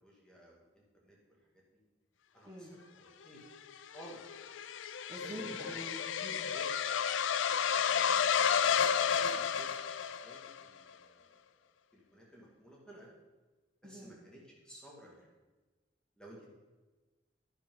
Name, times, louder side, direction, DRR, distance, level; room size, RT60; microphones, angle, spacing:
voice 1, 0.0-1.2 1.5-1.6 2.3-2.7 3.0-3.6 3.9-4.2 5.2-5.8 6.5-6.7 7.9-9.7 10.2-11.3 11.9-13.1 13.8-14.4 14.6-15.3 16.2-16.4, equal, 5° left, -4 dB, 2.1 m, -53 dB
sound 1, 3.5-10.6, left 7 dB, 90° left, 0.4 m, -31 dB
voice 2, 5.1-6.5 13.8-14.2, equal, 20° right, -4 dB, 1.4 m, -46 dB
10.5 x 10.5 x 3.8 m, 1.2 s
head